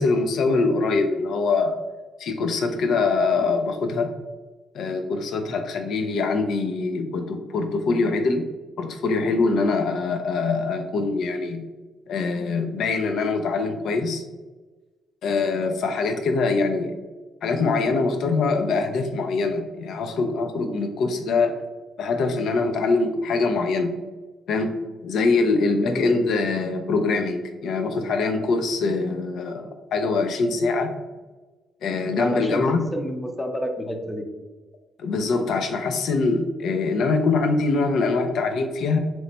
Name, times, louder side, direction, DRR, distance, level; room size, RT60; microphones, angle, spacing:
voice 1, 0.0-1.8 2.2-4.1 4.7-8.5 8.8-11.7 12.1-14.2 15.2-17.0 17.4-21.5 22.0-23.9 24.5-24.8 25.0-30.9 31.8-32.9 35.0-39.0, left 3 dB, 70° left, 5 dB, 0.4 m, -23 dB
voice 2, 25.5-26.4 32.2-32.6 32.9-34.2, equal, 10° left, 4 dB, 0.5 m, -29 dB
3.0 x 2.1 x 3.9 m, 1.2 s
cardioid pair, 90°, 0 cm